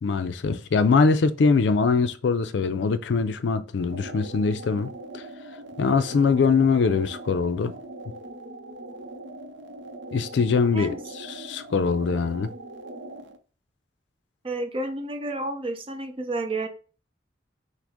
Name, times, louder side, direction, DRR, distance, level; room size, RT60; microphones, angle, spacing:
voice 1, 0.0-5.2 5.8-7.8 10.1-12.5, left 4 dB, 75° left, 0.4 m, -23 dB
sound 1, 3.8-13.4, right 2 dB, 80° right, 0.6 m, -41 dB
voice 2, 14.4-16.7, right 2 dB, 30° right, 0.6 m, -30 dB
6.0 x 2.0 x 3.6 m
head